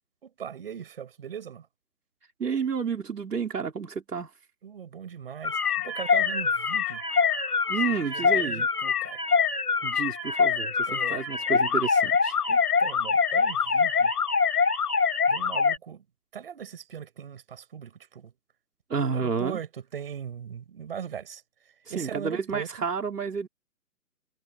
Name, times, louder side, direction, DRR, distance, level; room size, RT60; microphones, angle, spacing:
voice 1, 0.2-1.7 4.6-7.0 7.9-9.2 10.9-11.2 12.5-14.1 15.3-16.0 16.3-18.3 19.1-19.7 19.9-21.4 21.9-22.7, right 8 dB, 35° right, 5.9 m, -39 dB
voice 2, 2.4-4.3 7.7-8.7 9.8-12.4 18.9-19.6 21.9-23.5, right 6 dB, 75° right, 4.5 m, -30 dB
sound 1, 5.4-15.8, left 5 dB, 70° left, 7.2 m, -24 dB
hypercardioid pair, 175°, 47 cm